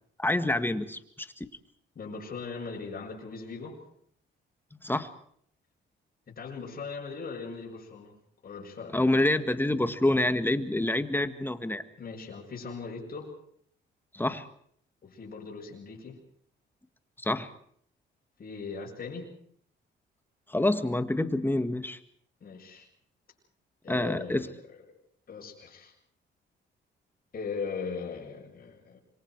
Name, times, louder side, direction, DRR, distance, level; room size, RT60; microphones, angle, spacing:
voice 1, 0.2-1.5 4.8-5.1 8.9-11.8 14.1-14.5 17.2-17.5 20.5-22.0 23.9-24.5, left 1 dB, 10° left, 10 dB, 1.8 m, -27 dB
voice 2, 2.0-3.8 6.3-8.1 8.4-9.0 12.0-13.3 15.0-16.2 18.4-19.3 22.4-22.9 23.8-24.5 25.3-25.9 27.3-29.0, left 5 dB, 50° left, -2 dB, 7.6 m, -39 dB
26.5 x 23.5 x 4.8 m, 0.62 s
cardioid pair, 90°, 20 cm